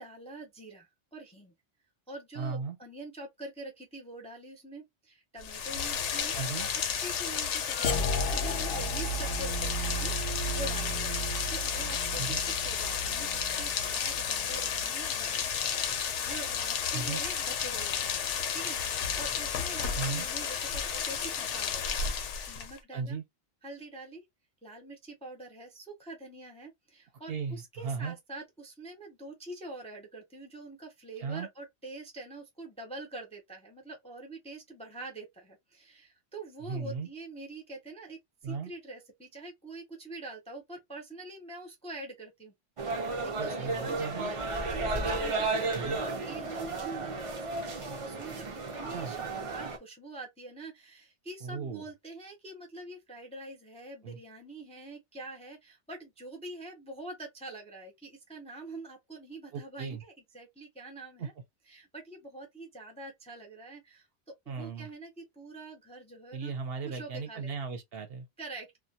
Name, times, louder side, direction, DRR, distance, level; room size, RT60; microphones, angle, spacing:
voice 1, 0.0-1.5 2.1-11.1 11.5-12.4 12.6-15.6 16.0-22.2 22.5-23.2 23.6-24.2 24.6-42.5 43.2-44.4 44.9-61.3 61.7-64.1 64.4-66.5 66.8-67.5 68.4-68.8, right 2 dB, 10° left, 0.5 m, -45 dB
voice 2, 2.4-2.8 6.3-6.7 12.2-12.4 16.9-17.2 19.9-20.3 22.9-23.2 27.3-28.2 31.2-31.5 36.6-37.1 38.4-38.7 43.4-44.3 45.7-46.0 48.9-49.1 51.4-51.8 54.0-54.2 59.5-60.0 61.2-61.3 64.5-64.9 66.3-68.3, right 5 dB, 65° right, 0.8 m, -36 dB
Rain, 5.4-22.8, left 7 dB, 85° left, 0.9 m, -32 dB
sound 1, 6.6-15.3, equal, 60° left, 0.6 m, -35 dB
sound 2, 42.8-49.8, right 3 dB, 45° right, 0.4 m, -33 dB
2.2 x 2.1 x 2.7 m
omnidirectional pair, 1.2 m